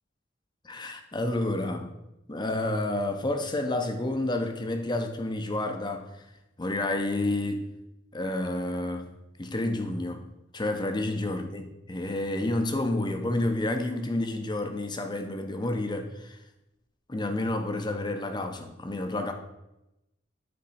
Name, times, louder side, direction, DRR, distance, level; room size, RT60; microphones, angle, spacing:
voice 1, 0.6-1.9 2.3-6.1 6.6-7.7 8.1-9.1 9.4-10.2 10.5-16.4 17.1-19.3, left 2 dB, 25° left, 5 dB, 0.8 m, -30 dB
8.6 x 4.4 x 4.2 m, 0.89 s
head